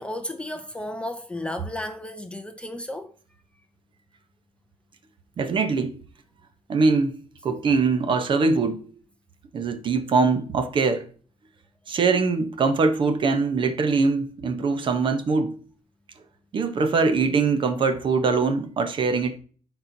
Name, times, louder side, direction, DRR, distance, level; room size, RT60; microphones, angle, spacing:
voice 1, 0.0-3.1, left 1 dB, 10° left, 0.4 m, -33 dB
voice 2, 5.4-6.0 6.7-7.2 7.4-8.9 9.5-11.1 11.9-15.6 16.5-19.4, right 4 dB, 40° right, 0.8 m, -22 dB
12.0 x 4.3 x 2.7 m
wide cardioid pair, 175°, 12 cm